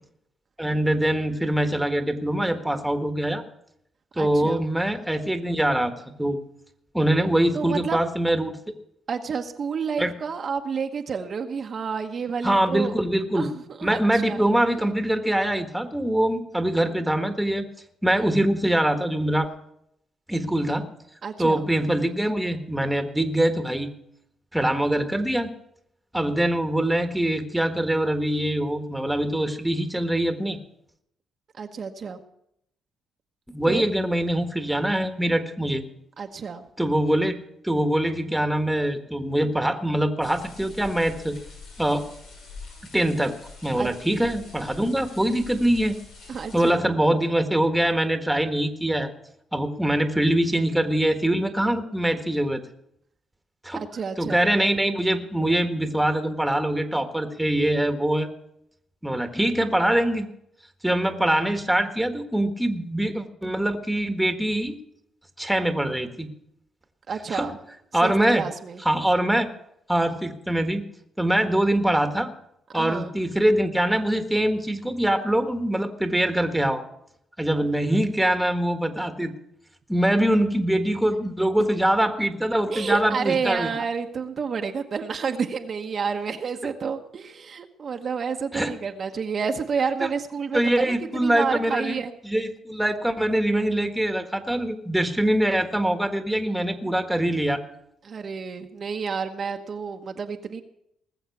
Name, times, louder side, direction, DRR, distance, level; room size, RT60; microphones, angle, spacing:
voice 1, 0.6-3.4 4.1-5.9 6.2-6.4 6.9-8.6 10.0-10.1 12.4-13.5 13.8-17.7 18.0-19.5 20.3-20.9 21.4-23.9 24.5-25.5 26.1-30.6 33.5-35.8 36.8-37.4 37.6-41.4 41.8-42.0 42.9-43.4 43.6-46.0 46.5-49.1 49.5-52.6 53.6-53.9 54.2-58.3 59.0-60.3 60.8-64.7 65.4-66.3 67.3-67.5 67.9-68.4 68.8-69.5 69.9-70.8 71.2-72.3 72.7-76.8 77.4-79.3 79.9-83.8 88.5-88.7 90.0-90.1 90.5-92.0 92.2-97.6, right 1 dB, 5° right, 7 dB, 1.5 m, -23 dB
voice 2, 4.2-4.6 7.5-8.0 9.1-12.9 13.3-14.4 14.8-14.9 21.2-21.7 31.6-32.2 33.7-33.9 36.2-36.7 43.7-43.9 46.3-46.8 53.7-54.5 67.1-67.6 68.0-68.8 72.7-73.1 82.7-92.1 98.0-100.6, right 6 dB, 50° right, 4 dB, 1.1 m, -30 dB
sound 1, 40.2-46.7, left 4 dB, 90° left, 6.0 m, -45 dB
19.0 x 7.3 x 7.1 m, 0.76 s
cardioid pair, 90°, 0 cm